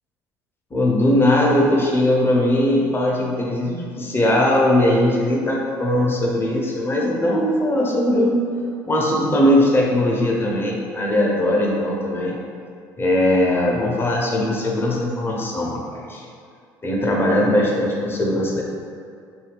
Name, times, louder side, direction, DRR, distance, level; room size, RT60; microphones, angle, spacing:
voice 1, 0.7-8.4 8.9-12.3 13.0-16.2 16.8-18.6, left 1 dB, 25° left, -3 dB, 0.7 m, -19 dB
2.6 x 2.5 x 3.2 m, 2.4 s
hypercardioid pair, 65°, 10 cm